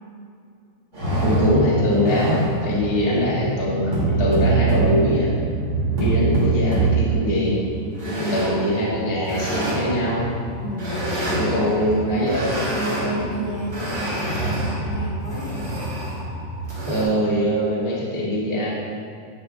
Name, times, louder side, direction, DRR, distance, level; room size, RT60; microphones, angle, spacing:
sound 1, 0.9-17.0, right 3 dB, 25° right, 1.8 m, -25 dB
voice 1, 1.2-5.3 6.0-7.6 8.3-10.2 11.4-12.5 16.8-18.7, equal, 20° left, -7 dB, 1.0 m, -22 dB
voice 2, 8.0-8.4 10.6-11.6 11.9-15.7, equal, 75° left, -4 dB, 1.7 m, -31 dB
11.0 x 8.9 x 2.3 m, 2.4 s
omnidirectional pair, 4.1 m